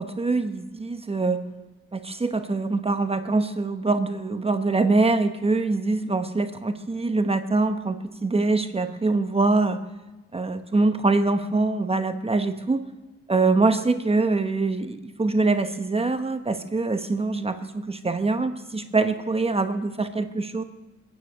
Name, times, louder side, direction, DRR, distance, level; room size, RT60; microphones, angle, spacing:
voice 1, 0.0-1.4 1.9-9.8 10.3-12.9 13.3-20.6, right 3 dB, 20° right, 8 dB, 0.9 m, -24 dB
22.0 x 9.5 x 6.4 m, 1.1 s
cardioid pair, 90°, 30 cm